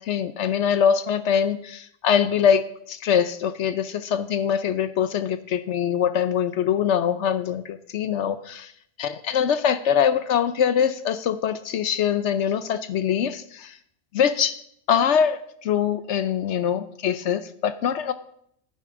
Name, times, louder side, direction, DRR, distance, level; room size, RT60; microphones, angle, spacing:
voice 1, 0.0-8.7 9.0-13.8 14.1-14.5 14.9-18.1, left 8 dB, 65° left, 12 dB, 0.8 m, -23 dB
10.0 x 9.9 x 3.7 m, 0.69 s
omnidirectional pair, 1.5 m